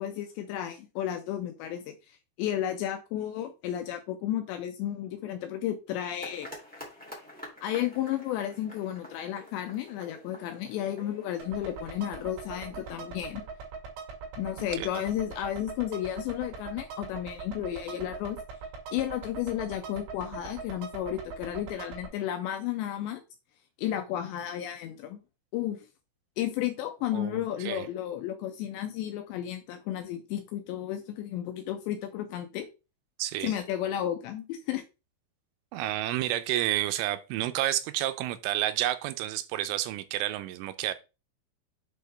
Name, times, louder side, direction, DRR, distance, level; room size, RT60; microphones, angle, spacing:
voice 1, 0.0-6.5 7.6-13.4 14.4-18.4 18.9-23.2 23.8-25.2 25.5-25.9 26.4-32.7 33.4-34.8, left 11 dB, 85° left, 2.6 m, -33 dB
sound 1, 6.2-13.5, left 1 dB, 5° left, 0.7 m, -49 dB
sound 2, 11.4-22.1, right 5 dB, 70° right, 4.5 m, -42 dB
voice 2, 27.1-27.9 33.2-33.5 35.7-40.9, right 14 dB, 85° right, 3.1 m, -30 dB
8.4 x 4.3 x 3.4 m
omnidirectional pair, 5.6 m